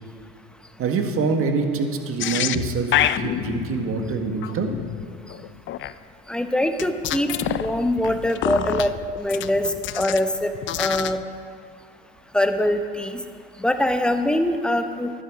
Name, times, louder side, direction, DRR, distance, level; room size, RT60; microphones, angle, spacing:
voice 1, 0.8-4.7, right 4 dB, 45° right, 5 dB, 1.7 m, -25 dB
sound 1, 2.2-5.9 6.8-10.3 10.5-11.2, left 11 dB, 40° left, 0.5 m, -28 dB
voice 2, 6.3-7.3 7.6-8.9 9.2-9.7 10.0-10.5 10.8-11.2 12.3-13.2 13.6-15.1, left 1 dB, 5° left, 7 dB, 1.0 m, -23 dB
12.0 x 11.0 x 4.9 m, 2.4 s
supercardioid pair, 85°, 30 cm